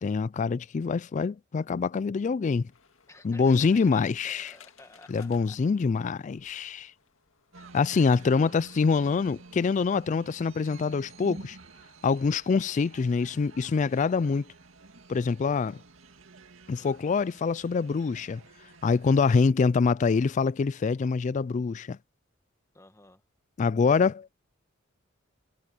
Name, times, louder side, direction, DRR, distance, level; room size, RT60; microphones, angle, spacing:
voice 1, 0.0-2.7 3.2-4.5 5.1-6.9 7.7-11.6 12.0-14.5 15.1-15.8 16.7-18.4 18.8-22.0 23.6-24.3, left 5 dB, 35° left, 0.3 m, -25 dB
sound 1, 2.7-7.7, left 7 dB, 85° left, 2.1 m, -59 dB
voice 2, 3.1-5.6 8.3-8.5 22.7-23.2, left 2 dB, 15° left, 1.9 m, -52 dB
sound 2, 7.5-19.5, right 3 dB, 85° right, 2.2 m, -50 dB
head